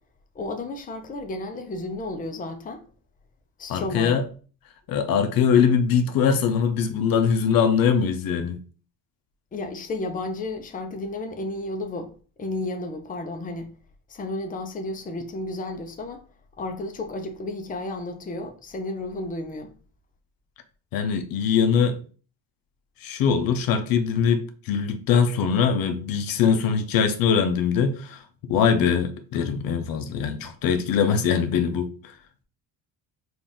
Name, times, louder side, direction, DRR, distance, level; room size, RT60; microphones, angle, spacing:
voice 1, 0.3-2.8 3.6-4.2 9.5-12.1 12.4-13.7 14.1-16.2 16.6-19.7, left 2 dB, 20° left, 0.6 m, -32 dB
voice 2, 3.7-4.2 4.9-8.6 20.9-22.0 23.0-28.2 28.5-32.1, left 7 dB, 65° left, 0.6 m, -22 dB
3.9 x 2.5 x 3.5 m
cardioid pair, 110°, 37 cm